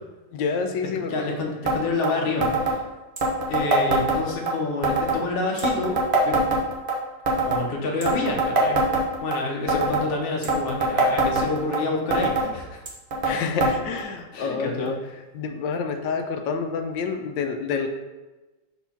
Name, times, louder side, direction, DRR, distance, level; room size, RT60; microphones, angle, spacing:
voice 1, 0.3-1.4 9.6-9.9 13.2-15.0 15.3-17.9, left 5 dB, 80° left, 5 dB, 1.3 m, -28 dB
voice 2, 1.1-2.8 3.5-6.0 6.2-6.6 7.4-8.8 9.2-12.8 14.3-14.9, left 3 dB, 40° left, 0 dB, 0.9 m, -28 dB
sound 1, 1.7-1.8 2.0-2.1 2.4-2.8 3.2-4.5 4.8-5.2 5.6-7.0 7.3-7.6 8.0-9.4 9.7-10.1 10.4-11.8 12.1-12.5 12.9-13.3 13.6-13.7 14.0-14.1 14.9-15.0 15.7-15.8, right 2 dB, 40° right, 0.8 m, -22 dB
4.5 x 4.2 x 5.6 m, 1.1 s
omnidirectional pair, 2.0 m